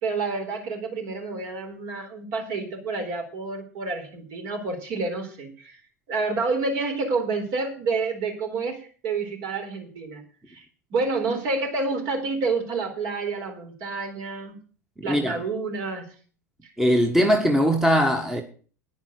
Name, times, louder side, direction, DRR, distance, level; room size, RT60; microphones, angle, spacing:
voice 1, 0.0-5.8 6.1-10.2 10.5-10.6 10.9-14.5 15.0-16.0, right 3 dB, 50° right, 4.2 m, -29 dB
voice 2, 15.0-15.4 16.8-18.4, equal, 5° right, 1.6 m, -21 dB
10.0 x 10.0 x 6.5 m
figure-of-eight pair, 80°, 9 cm